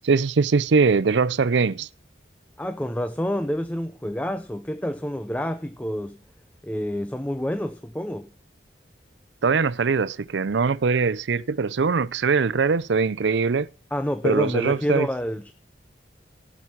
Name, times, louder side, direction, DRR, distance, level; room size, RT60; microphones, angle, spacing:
voice 1, 0.0-1.9 9.4-13.7 14.2-15.1, right 5 dB, 85° right, 0.5 m, -22 dB
voice 2, 2.6-6.2 6.6-8.3 13.9-15.5, equal, 10° left, 0.6 m, -28 dB
17.5 x 6.1 x 7.2 m
head